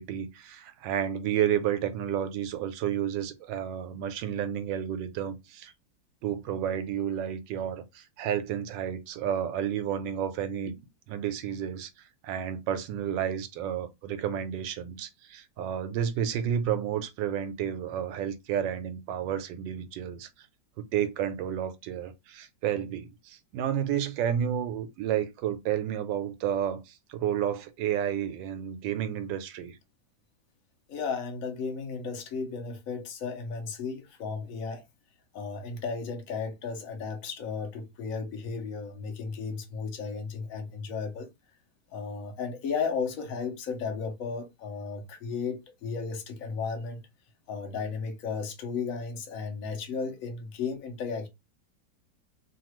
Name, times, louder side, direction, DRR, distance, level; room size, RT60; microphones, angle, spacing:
voice 1, 0.0-5.7 6.2-10.7 11.1-20.3 20.9-29.8, right 9 dB, 85° right, 1.3 m, -31 dB
voice 2, 30.9-34.8 35.3-41.3 41.9-47.0 47.5-51.3, left 5 dB, 55° left, 1.1 m, -34 dB
3.2 x 2.3 x 3.0 m
omnidirectional pair, 1.9 m